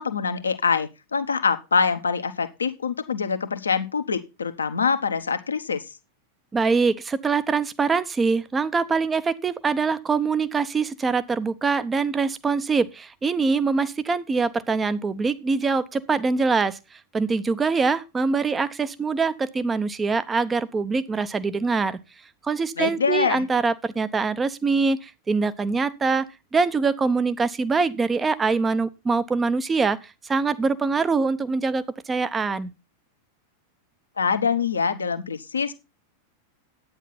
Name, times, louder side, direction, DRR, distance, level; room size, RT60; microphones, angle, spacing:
voice 1, 0.0-5.8 22.8-23.4 34.2-35.7, left 5 dB, 75° left, 1.1 m, -24 dB
voice 2, 6.5-22.0 22.4-32.7, right 4 dB, 15° right, 0.8 m, -24 dB
10.5 x 9.2 x 4.2 m
figure-of-eight pair, 90°, 0 cm